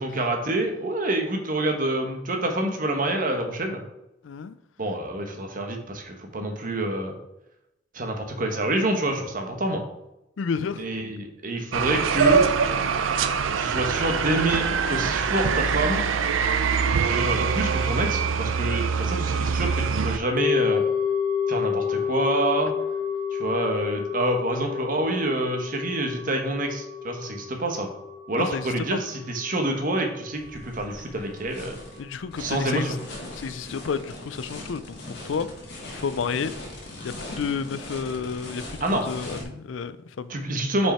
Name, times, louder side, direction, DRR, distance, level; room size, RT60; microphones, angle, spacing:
voice 1, 0.0-3.8 4.8-7.1 7.9-9.8 10.8-12.5 13.6-16.0 17.1-20.8 21.5-22.7 23.3-27.9 28.3-31.8 32.4-33.0 38.8-39.0 40.3-40.9, right 1 dB, 45° right, 3 dB, 1.1 m, -27 dB
voice 2, 4.2-4.6 10.4-10.8 13.3-13.5 28.4-29.0 32.0-33.0 33.3-35.5 35.9-36.5 37.0-40.3, left 6 dB, 75° left, 14 dB, 0.4 m, -31 dB
sound 1, 11.7-20.2, right 6 dB, 85° right, 0.5 m, -24 dB
sound 2, 20.4-30.6 30.9-31.0, left 7 dB, 25° right, 0.6 m, -29 dB
sound 3, 30.3-39.4, left 1 dB, 55° left, 1.8 m, -40 dB
5.9 x 4.7 x 4.3 m, 0.89 s
head